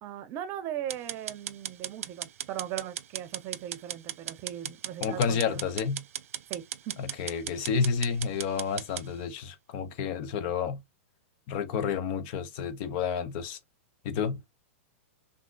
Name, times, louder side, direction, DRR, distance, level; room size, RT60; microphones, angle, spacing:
voice 1, 0.0-5.8 6.5-7.0, right 11 dB, 40° right, 0.6 m, -38 dB
sound 1, 0.9-9.1, right 10 dB, 80° right, 0.4 m, -37 dB
voice 2, 5.0-6.0 7.0-10.8 11.5-13.6 14.0-14.4, left 6 dB, 50° left, 0.6 m, -30 dB
3.7 x 2.6 x 2.2 m
hypercardioid pair, 130°, 7 cm